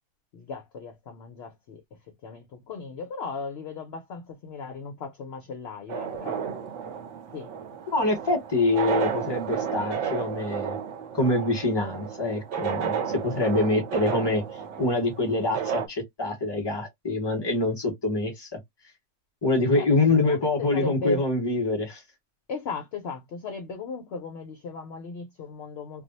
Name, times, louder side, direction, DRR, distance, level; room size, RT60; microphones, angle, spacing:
voice 1, 0.3-6.4 7.3-7.5 19.7-19.9 20.2-21.2 22.5-26.0, left 4 dB, 65° left, 0.6 m, -37 dB
sound 1, 5.9-15.9, right 7 dB, 60° right, 0.8 m, -32 dB
voice 2, 7.9-10.8 11.1-14.4 14.8-18.6 19.4-22.0, left 2 dB, 20° left, 1.1 m, -25 dB
2.6 x 2.0 x 3.9 m
omnidirectional pair, 1.6 m